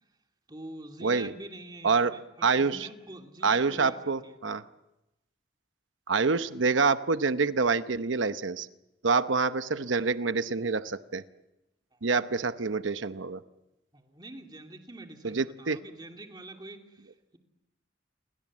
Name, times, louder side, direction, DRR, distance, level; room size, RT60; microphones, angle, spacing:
voice 1, 0.5-4.3 11.9-12.0 13.9-17.4, right 2 dB, 20° right, 3 dB, 2.6 m, -45 dB
voice 2, 1.0-1.3 1.8-2.1 2.4-2.9 3.4-4.6 6.1-8.7 9.0-11.2 12.0-13.4 15.2-15.8, right 4 dB, 85° right, 11 dB, 0.9 m, -26 dB
29.0 x 23.5 x 7.5 m, 0.96 s
head